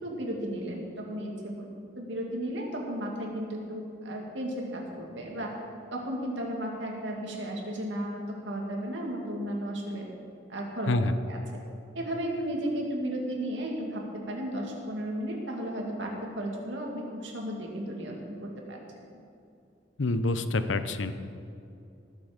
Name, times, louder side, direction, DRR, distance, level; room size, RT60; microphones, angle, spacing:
voice 1, 0.0-1.7 2.0-5.5 5.9-8.2 8.4-10.1 10.5-10.9 11.2-11.4 11.9-18.8, right 1 dB, 75° right, 0 dB, 2.4 m, -34 dB
voice 2, 20.0-21.1, left 2 dB, 85° left, 11 dB, 0.7 m, -27 dB
19.0 x 7.6 x 5.2 m, 2.6 s
head